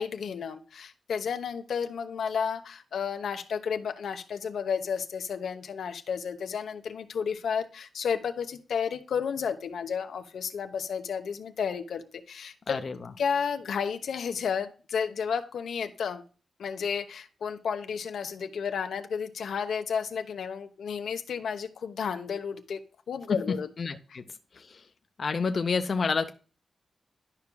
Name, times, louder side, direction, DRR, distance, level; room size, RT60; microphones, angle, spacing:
voice 1, 0.0-12.8 13.2-16.2 16.6-22.8 23.1-23.7 24.1-24.2, left 6 dB, 85° left, 7 dB, 0.9 m, -32 dB
voice 2, 23.5-24.2 24.6-24.8 25.2-26.3, left 4 dB, 45° left, 7 dB, 0.6 m, -29 dB
11.5 x 5.8 x 2.2 m, 0.37 s
wide cardioid pair, 130°, 0 cm